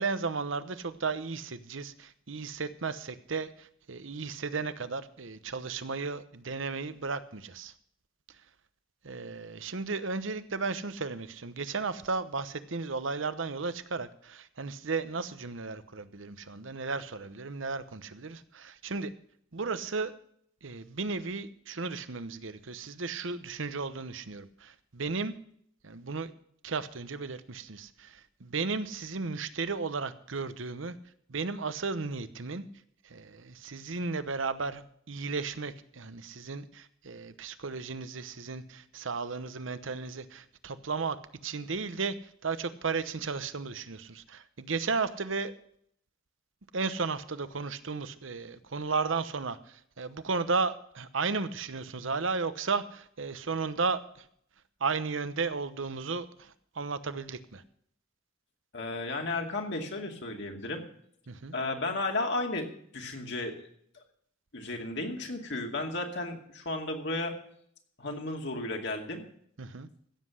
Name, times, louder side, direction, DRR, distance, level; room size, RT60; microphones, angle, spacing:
voice 1, 0.0-7.7 9.0-19.1 19.5-20.1 20.6-25.3 25.8-26.3 26.6-30.9 31.3-32.6 33.0-41.2 41.4-42.2 42.4-45.5 46.7-54.3 54.8-57.6 61.3-61.5 69.6-69.9, right 4 dB, 70° right, 13 dB, 0.9 m, -34 dB
voice 2, 58.7-60.8 61.5-62.7 62.9-63.7 63.9-64.0 64.5-67.3 68.0-69.2, left 2 dB, 60° left, 2 dB, 2.4 m, -33 dB
15.5 x 7.6 x 6.3 m, 0.65 s
head